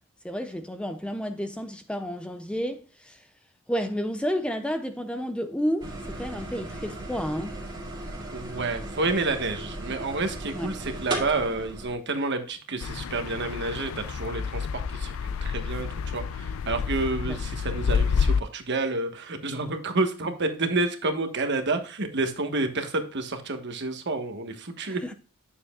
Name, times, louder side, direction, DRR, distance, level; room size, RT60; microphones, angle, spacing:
voice 1, 0.2-3.3 3.7-7.6 10.5-10.7 17.3-17.4 24.8-25.1, equal, 5° left, 0.5 m, -31 dB
sound 1, 5.8-12.0, right 1 dB, 20° right, 2.2 m, -36 dB
voice 2, 8.3-25.0, right 3 dB, 50° right, 1.3 m, -29 dB
sound 2, 12.8-18.4, left 6 dB, 65° left, 0.4 m, -29 dB
9.5 x 7.2 x 2.3 m
head